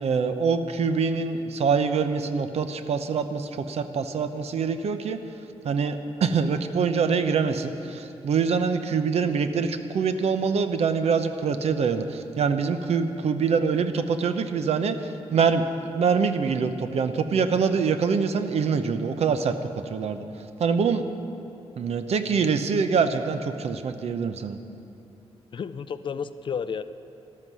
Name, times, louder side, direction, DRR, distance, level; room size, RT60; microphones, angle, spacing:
voice 1, 0.0-5.2 5.6-15.7 15.9-19.5 19.9-20.3 20.6-21.0 21.8-24.6, right 5 dB, 75° right, 9 dB, 0.8 m, -24 dB
voice 2, 25.5-26.8, left 6 dB, 50° left, 13 dB, 0.4 m, -31 dB
13.5 x 13.0 x 6.2 m, 2.8 s
wide cardioid pair, 155°, 11 cm